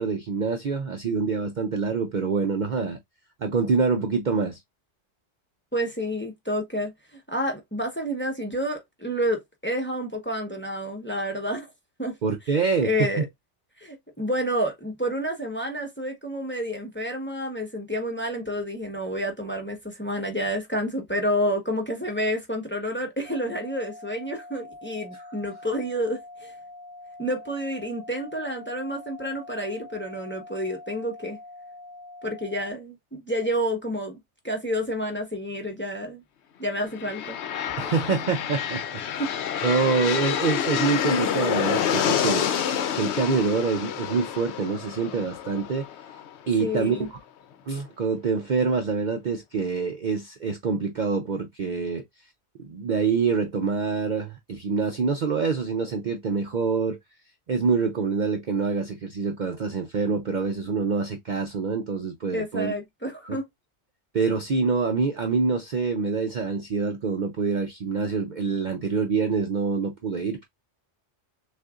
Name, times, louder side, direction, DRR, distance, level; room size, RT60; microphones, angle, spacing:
voice 1, 0.0-3.0 3.4-4.6 12.2-13.3 25.1-25.2 37.8-38.8 39.6-45.9 46.5-47.1 47.7-52.0 52.6-57.0 57.5-62.7 63.2-63.4 64.1-70.5, right 5 dB, 50° right, 0.6 m, -26 dB
voice 2, 5.7-11.7 12.0-12.2 12.8-13.3 13.8-26.5 27.2-31.4 32.2-34.2 34.4-36.2 36.6-37.4 39.2-39.3 46.6-47.1 62.3-63.5, equal, 10° left, 0.9 m, -29 dB
sound 1, 23.2-32.7, left 2 dB, 30° left, 0.5 m, -44 dB
sound 2, 36.9-46.7, left 9 dB, 70° left, 0.9 m, -28 dB
6.3 x 2.5 x 2.4 m
omnidirectional pair, 1.2 m